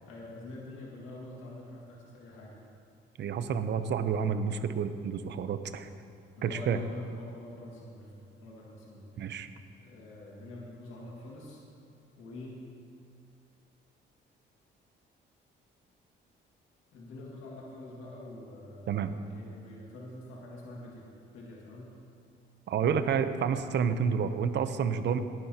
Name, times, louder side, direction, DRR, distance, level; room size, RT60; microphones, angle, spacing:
voice 1, 0.0-2.6 3.8-3.9 6.4-9.4 9.8-11.6 12.2-12.6 16.9-22.0, left 1 dB, 90° left, -3 dB, 2.0 m, -46 dB
voice 2, 3.2-5.9 6.4-6.8 9.2-9.5 18.9-19.1 22.7-25.2, right 7 dB, 60° right, 10 dB, 0.7 m, -29 dB
18.0 x 11.0 x 2.9 m, 2.4 s
cardioid pair, 90°, 20 cm